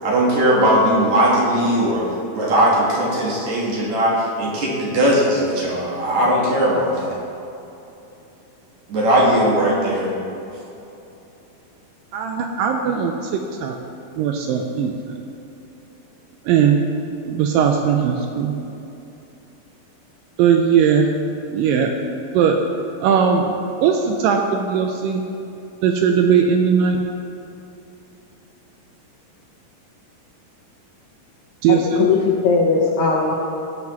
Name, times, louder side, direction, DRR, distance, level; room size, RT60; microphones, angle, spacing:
voice 1, 0.0-2.0 2.3-7.2 8.9-10.1, right 1 dB, 60° right, -4 dB, 2.4 m, -18 dB
voice 2, 12.1-13.8 14.2-15.2 16.5-16.8 17.2-18.6 20.4-21.1 21.5-21.9 22.3-22.6 23.0-23.5 23.8-25.2 25.8-27.0 31.6-32.1, right 7 dB, 80° right, 3 dB, 2.1 m, -18 dB
voice 3, 31.7-33.4, left 4 dB, 80° left, -2 dB, 1.7 m, -18 dB
17.5 x 5.9 x 3.0 m, 2.9 s
omnidirectional pair, 4.3 m